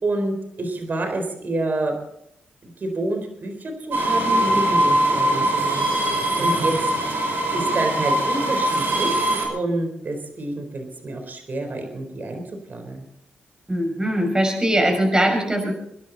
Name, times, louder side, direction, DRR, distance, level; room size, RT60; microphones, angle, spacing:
voice 1, 0.0-1.9 2.6-5.9 6.4-6.9 7.5-9.2 9.5-12.4 12.7-13.1, right 2 dB, 55° right, 5 dB, 4.2 m, -28 dB
sound 1, 3.9-9.4, right 1 dB, 70° right, 5.7 m, -21 dB
voice 2, 13.7-15.7, right 1 dB, 20° right, 2 dB, 6.0 m, -21 dB
25.5 x 11.0 x 4.1 m, 0.76 s
cardioid pair, 55°, 4 cm